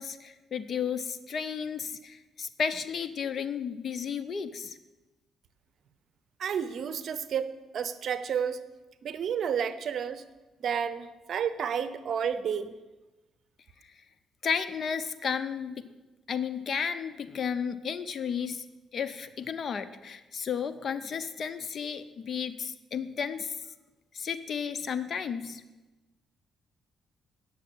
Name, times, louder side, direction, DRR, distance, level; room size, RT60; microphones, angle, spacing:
voice 1, 0.0-4.8 14.4-15.9 16.3-18.6 18.9-23.5 24.1-25.6, left 7 dB, 50° left, 12 dB, 0.7 m, -33 dB
voice 2, 6.4-8.6 9.0-10.2 10.6-12.8, right 7 dB, 60° right, 13 dB, 0.7 m, -31 dB
8.6 x 6.8 x 8.4 m, 1.1 s
cardioid pair, 90°, 0 cm